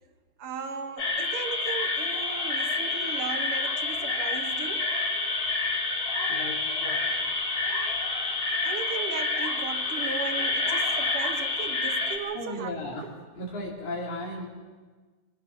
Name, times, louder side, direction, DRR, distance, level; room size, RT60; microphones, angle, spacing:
voice 1, 0.4-4.9 8.6-13.1, right 6 dB, 55° right, 7 dB, 2.0 m, -37 dB
sound 1, 1.0-12.2, left 3 dB, 60° left, 4.2 m, -28 dB
voice 2, 6.3-7.2 12.3-13.0 13.3-14.5, left 2 dB, 75° left, -4 dB, 5.1 m, -35 dB
26.5 x 19.5 x 5.8 m, 1.4 s
omnidirectional pair, 3.4 m